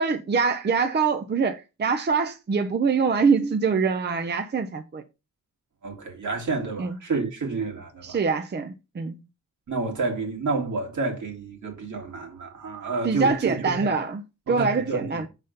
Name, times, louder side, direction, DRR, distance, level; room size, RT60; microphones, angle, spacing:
voice 1, 0.0-5.0 6.8-7.0 8.0-9.2 13.0-14.2 14.5-15.3, right 5 dB, 35° right, 0.6 m, -24 dB
voice 2, 5.8-8.2 9.7-13.9 14.5-15.2, right 3 dB, 70° right, 2.2 m, -29 dB
5.5 x 4.1 x 5.1 m
wide cardioid pair, 95°, 31 cm